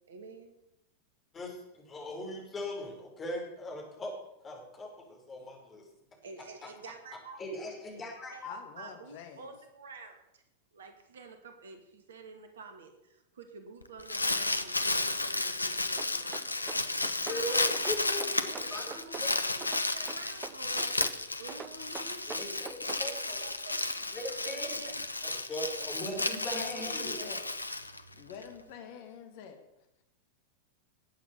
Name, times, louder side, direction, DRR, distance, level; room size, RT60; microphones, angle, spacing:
voice 1, 0.1-0.5 6.2-7.4 8.3-8.4 8.8-10.4 10.7-17.9 18.8-21.0 21.4-22.3 22.8-25.2, right 4 dB, 65° right, 6 dB, 2.4 m, -49 dB
voice 2, 1.3-4.1 4.4-5.9 7.4-8.6 17.3-18.9 19.2-19.3 22.3-23.4 24.1-24.8 25.2-27.3, left 1 dB, 20° left, 1 dB, 5.2 m, -40 dB
voice 3, 8.4-9.5 26.1-27.4 27.9-29.6, left 7 dB, 50° left, 6 dB, 2.2 m, -46 dB
Crumpling crinkling, 13.8-28.4, left 2 dB, 80° left, 0.9 m, -33 dB
sound 1, 16.0-17.4 17.7-19.3 19.6-21.2 21.5-23.1, right 7 dB, 25° right, 0.7 m, -44 dB
19.0 x 8.5 x 7.0 m, 0.86 s
figure-of-eight pair, 90°, 0 cm